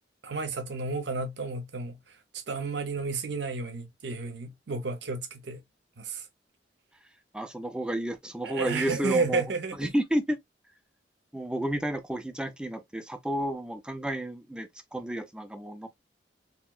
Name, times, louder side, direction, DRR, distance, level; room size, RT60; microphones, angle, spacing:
voice 1, 0.2-2.0 2.5-5.6 6.0-6.2 8.4-9.9, right 4 dB, 65° right, 0.7 m, -32 dB
voice 2, 7.3-9.4 9.7-10.4 11.3-15.9, right 1 dB, 5° right, 0.4 m, -31 dB
3.0 x 2.8 x 2.3 m
head